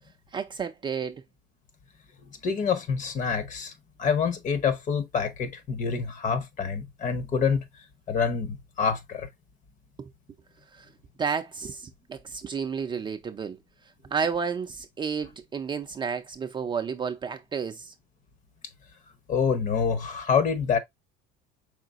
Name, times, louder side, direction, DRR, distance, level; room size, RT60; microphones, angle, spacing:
voice 1, 0.3-1.2 10.0-10.1 10.7-10.9 11.2-13.6 14.1-17.9, right 6 dB, 20° right, 0.4 m, -31 dB
voice 2, 2.4-3.7 4.0-7.6 8.1-9.3 19.3-20.8, left 6 dB, 35° left, 0.9 m, -26 dB
4.9 x 3.8 x 2.4 m
cardioid pair, 135°, 21 cm